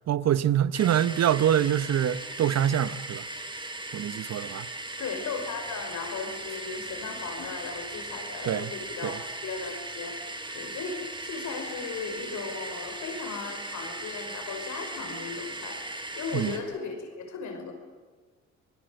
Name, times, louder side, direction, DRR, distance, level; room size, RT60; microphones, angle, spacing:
voice 1, 0.1-3.2 3.9-4.7 8.4-8.7 9.0-9.2 16.3-16.5, right 10 dB, 60° right, 1.0 m, -25 dB
sound 1, 0.7-16.6, right 2 dB, 15° right, 3.5 m, -38 dB
voice 2, 5.0-17.7, left 5 dB, 75° left, 5.8 m, -37 dB
26.5 x 20.5 x 7.7 m
cardioid pair, 90°, 30 cm